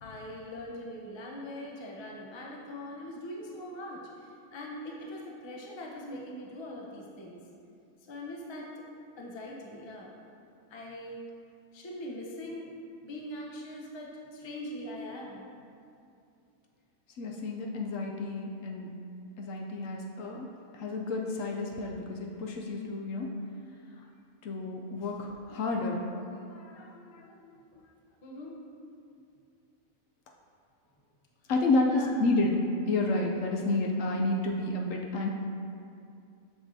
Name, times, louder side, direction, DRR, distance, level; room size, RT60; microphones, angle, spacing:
voice 1, 0.0-7.4 8.1-8.7 9.2-10.1 10.7-11.2 11.7-12.7 13.0-15.5 28.2-28.6 31.9-32.1, left 1 dB, 25° left, -2 dB, 0.6 m, -42 dB
voice 2, 17.2-18.9 19.4-20.5 20.7-23.3 24.4-27.5 31.5-32.6 32.9-35.3, left 2 dB, 70° left, 1 dB, 0.9 m, -30 dB
8.0 x 6.2 x 2.7 m, 2.5 s
omnidirectional pair, 1.5 m